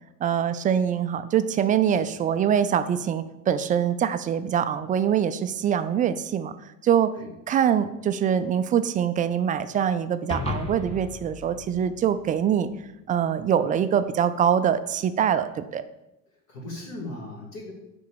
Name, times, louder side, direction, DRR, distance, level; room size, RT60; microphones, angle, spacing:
voice 1, 0.2-6.5 6.8-7.1 7.5-12.7 13.1-15.8, right 8 dB, 20° right, 11 dB, 0.4 m, -24 dB
voice 2, 1.9-2.3 7.2-7.3 16.5-17.7, left 2 dB, 50° left, -5 dB, 2.3 m, -38 dB
sound 1, 10.3-12.8, left 4 dB, 15° left, 0.9 m, -35 dB
6.4 x 5.3 x 7.0 m, 0.92 s
figure-of-eight pair, 65°, 42 cm